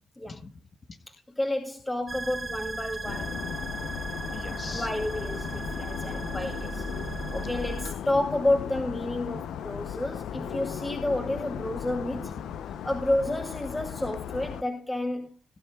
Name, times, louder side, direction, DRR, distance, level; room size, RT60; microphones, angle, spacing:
voice 1, 1.1-3.5 4.7-6.8 7.3-12.3 12.8-15.3, left 1 dB, 15° left, 2.4 m, -30 dB
sound 1, 2.1-7.9, right 3 dB, 30° right, 1.2 m, -37 dB
sound 2, 3.0-14.6, left 9 dB, 90° left, 0.6 m, -36 dB
voice 2, 4.3-4.9 5.5-5.7 7.0-7.5 10.4-10.5 12.1-12.9, left 3 dB, 40° left, 1.0 m, -43 dB
19.0 x 11.0 x 2.3 m
cardioid pair, 90°, 0 cm